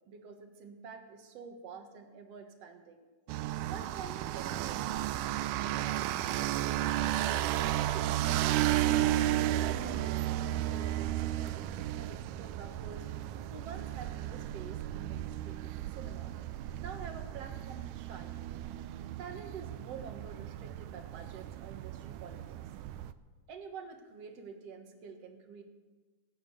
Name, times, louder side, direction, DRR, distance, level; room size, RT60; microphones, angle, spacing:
voice 1, 0.1-3.0 3.6-9.0 9.6-13.1 13.5-16.3 16.8-18.4 19.2-22.6 23.5-25.6, right 5 dB, 55° right, 5 dB, 2.4 m, -48 dB
sound 1, 3.3-23.1, right 13 dB, 80° right, 2.0 m, -33 dB
20.0 x 8.9 x 8.0 m, 1.3 s
omnidirectional pair, 3.8 m